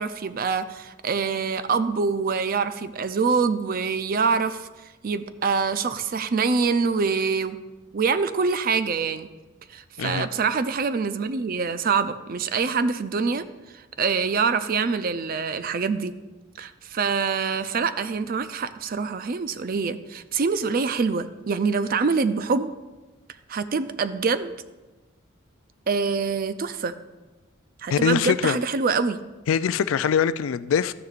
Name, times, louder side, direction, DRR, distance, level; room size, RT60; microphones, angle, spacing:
voice 1, 0.0-4.7 5.0-7.6 7.9-9.3 9.7-13.4 13.7-16.1 16.6-22.7 23.5-24.5 25.9-26.9 27.8-29.2, right 5 dB, 45° right, 0.4 m, -25 dB
voice 2, 27.9-28.6 29.5-30.9, left 7 dB, 80° left, 0.3 m, -23 dB
13.0 x 9.4 x 2.5 m
head